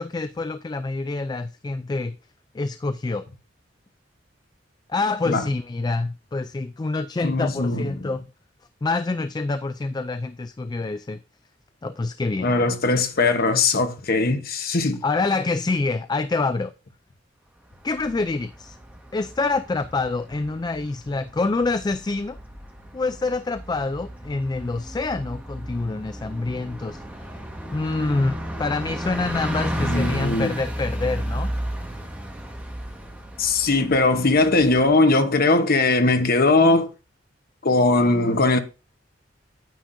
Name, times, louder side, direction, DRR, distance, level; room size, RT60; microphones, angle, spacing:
voice 1, 0.0-2.2 2.5-3.2 4.9-8.3 8.8-11.2 11.8-12.5 15.0-16.7 17.8-18.8 19.1-22.4 22.9-27.0 27.7-31.5, left 3 dB, 20° left, 0.3 m, -26 dB
voice 2, 7.2-8.1 12.4-15.0 29.8-30.5 33.4-36.9 37.6-38.6, left 3 dB, 55° left, 1.0 m, -20 dB
Bus, 17.8-34.9, equal, 10° right, 1.5 m, -33 dB
9.8 x 9.3 x 2.6 m
head